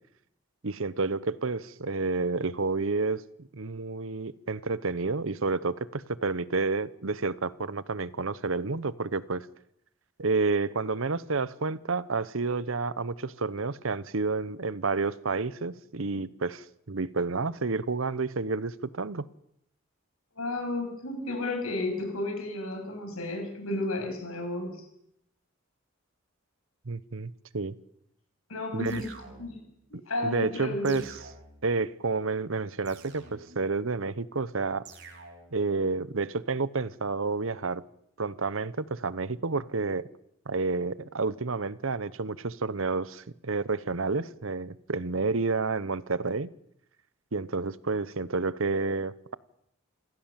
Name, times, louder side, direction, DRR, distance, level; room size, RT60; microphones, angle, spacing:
voice 1, 0.6-9.5 10.2-19.2 26.9-27.8 28.7-29.0 30.2-31.1 31.6-34.8 35.5-37.8 38.2-40.1 40.5-46.5 47.3-49.3, right 3 dB, 70° right, 0.9 m, -30 dB
voice 2, 20.4-24.8 28.5-29.1 29.4-29.6 30.1-31.0, left 2 dB, 85° left, 7.5 m, -32 dB
sound 1, 28.9-29.8 30.9-31.8 32.9-33.8 34.9-35.7, right 4 dB, 55° right, 3.3 m, -49 dB
27.5 x 16.0 x 7.5 m
head